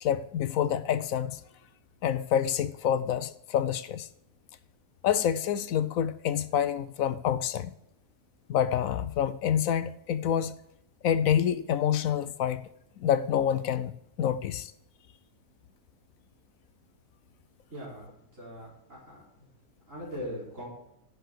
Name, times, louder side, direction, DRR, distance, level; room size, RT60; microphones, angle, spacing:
voice 1, 0.0-1.4 2.0-4.1 5.0-7.7 8.5-10.5 11.0-12.6 13.0-13.9 14.2-14.7, left 9 dB, 70° left, 1.0 m, -27 dB
voice 2, 17.7-19.2 19.9-20.7, equal, 55° right, 5.0 m, -40 dB
11.0 x 6.8 x 6.5 m
omnidirectional pair, 1.6 m